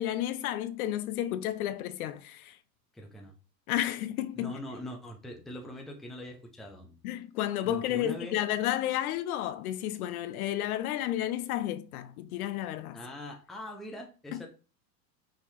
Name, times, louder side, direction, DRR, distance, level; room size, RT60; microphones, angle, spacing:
voice 1, 0.0-2.6 3.7-4.5 7.0-13.0 14.3-14.5, left 12 dB, 60° left, 0.6 m, -32 dB
voice 2, 2.9-3.3 4.4-7.0 7.6-8.4 12.9-14.5, left 1 dB, ahead, 0.5 m, -42 dB
5.6 x 2.9 x 3.2 m
hypercardioid pair, 125°, 50 cm